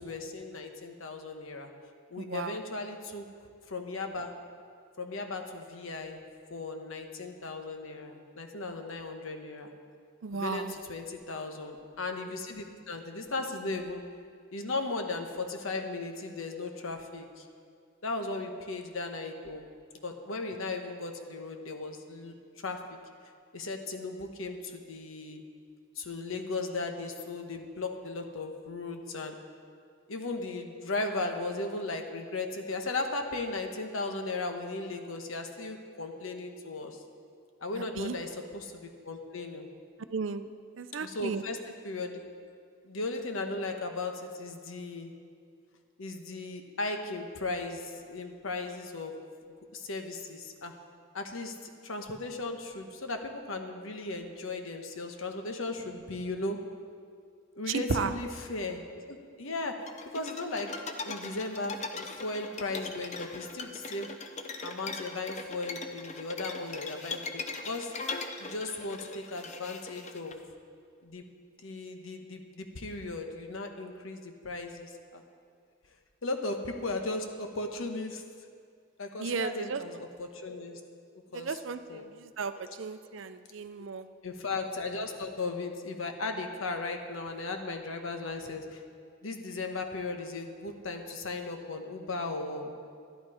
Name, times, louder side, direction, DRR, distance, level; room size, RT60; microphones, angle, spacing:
voice 1, 0.0-1.7 2.1-3.3 3.7-4.3 5.0-6.2 6.5-9.7 10.3-14.0 14.5-17.4 18.0-19.7 20.0-22.3 22.6-22.8 23.5-25.4 26.0-29.4 30.1-37.0 37.6-39.7 41.0-41.6 41.8-42.2 42.8-45.1 46.0-49.1 49.7-50.7 51.1-56.6 57.5-59.7 60.1-60.7 61.0-64.1 64.6-67.9 68.4-70.4 71.0-71.2 71.6-75.2 76.2-78.2 79.0-80.8 81.3-81.6 81.9-82.1 82.5-82.7 84.2-88.8 89.2-92.7, left 3 dB, 80° left, 5 dB, 1.1 m, -36 dB
voice 2, 2.2-2.6 10.2-10.8 37.8-38.2 40.1-40.5 40.8-41.4 57.7-58.1 79.2-79.8 81.3-84.1, right 5 dB, 70° right, 11 dB, 0.5 m, -34 dB
sound 1, 59.9-70.3, left 4 dB, 35° left, 0.6 m, -40 dB
11.5 x 11.5 x 4.9 m, 2.2 s
head